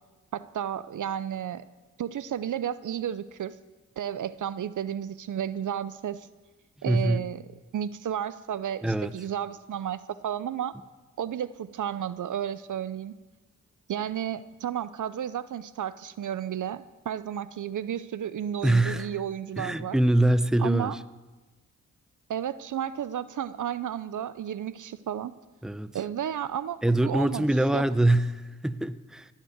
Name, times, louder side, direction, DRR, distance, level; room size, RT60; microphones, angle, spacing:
voice 1, 0.3-1.6 2.0-3.6 4.0-6.3 6.8-7.4 7.7-10.7 11.2-13.1 13.9-20.0 20.6-21.0 22.3-25.3 25.9-27.5 27.7-27.8, right 9 dB, 65° right, 16 dB, 0.6 m, -32 dB
voice 2, 6.9-7.2 8.8-9.1 18.6-19.1 19.6-20.9 25.6-26.0 26.8-29.3, right 1 dB, ahead, 14 dB, 0.7 m, -24 dB
16.5 x 7.4 x 8.0 m, 1.2 s
supercardioid pair, 45°, 33 cm